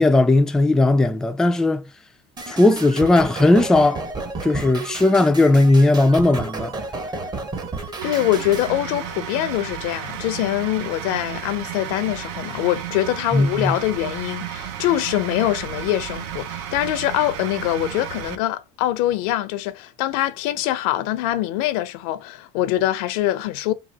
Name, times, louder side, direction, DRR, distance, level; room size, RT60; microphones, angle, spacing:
voice 1, 0.0-1.8 2.5-4.0 4.4-6.7 13.3-13.7, left 2 dB, 5° left, 0.3 m, -17 dB
sound 1, 2.4-8.7, right 3 dB, 25° right, 0.8 m, -32 dB
voice 2, 8.0-23.7, left 14 dB, 75° left, 0.6 m, -24 dB
sound 2, 8.0-18.3, right 10 dB, 75° right, 0.7 m, -33 dB
3.8 x 2.4 x 4.1 m
supercardioid pair, 120°, 18 cm